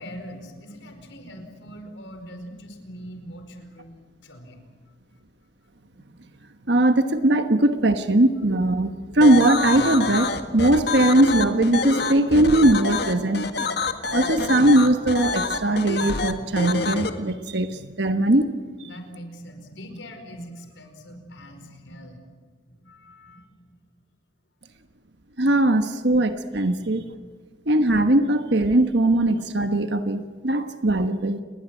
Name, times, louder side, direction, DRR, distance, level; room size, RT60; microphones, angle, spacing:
voice 1, 0.0-4.9 6.0-6.1 18.8-22.2 22.6-23.8 26.7-27.2, equal, 75° left, 6 dB, 5.0 m, -42 dB
voice 2, 6.7-13.4 14.1-18.9 25.4-27.0 27.7-31.4, right 1 dB, 60° right, 8 dB, 1.3 m, -20 dB
sound 1, 9.2-17.1, left 4 dB, 55° left, 1.9 m, -27 dB
29.5 x 21.5 x 9.1 m, 1.5 s
head